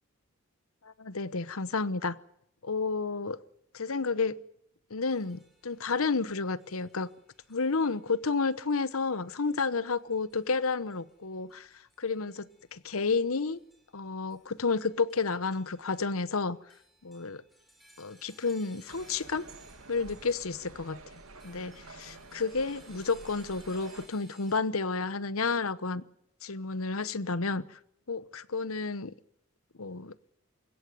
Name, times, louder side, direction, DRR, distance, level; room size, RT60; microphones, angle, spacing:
voice 1, 0.8-2.2 2.6-3.4 3.7-4.4 4.9-7.1 7.5-11.7 12.0-13.6 13.9-16.6 17.0-17.4 18.0-19.5 19.9-21.0 21.4-26.0 26.4-27.8 28.1-29.1 29.8-30.1, left 4 dB, 75° left, 1.0 m, -31 dB
sound 1, 5.1-24.6, equal, ahead, 4.8 m, -63 dB
sound 2, 18.9-24.1, right 3 dB, 75° right, 2.4 m, -50 dB
22.0 x 17.0 x 9.3 m
head